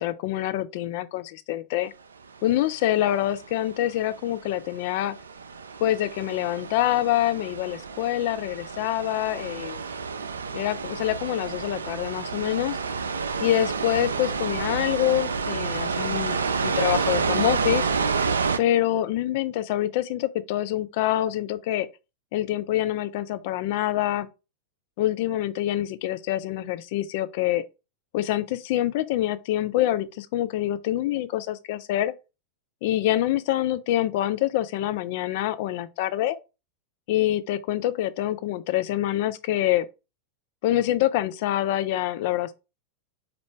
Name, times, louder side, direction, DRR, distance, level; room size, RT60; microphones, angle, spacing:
voice 1, 0.0-1.9 2.4-5.1 5.8-9.8 10.5-12.8 13.4-17.9 18.6-21.9 22.3-24.3 25.0-27.6 28.1-32.1 32.8-36.4 37.1-39.9 40.6-42.5, left 13 dB, 50° left, 0.4 m, -26 dB
sound 1, 2.5-18.6, right 5 dB, 70° right, 0.3 m, -29 dB
4.3 x 2.4 x 3.6 m
figure-of-eight pair, 90°, 0 cm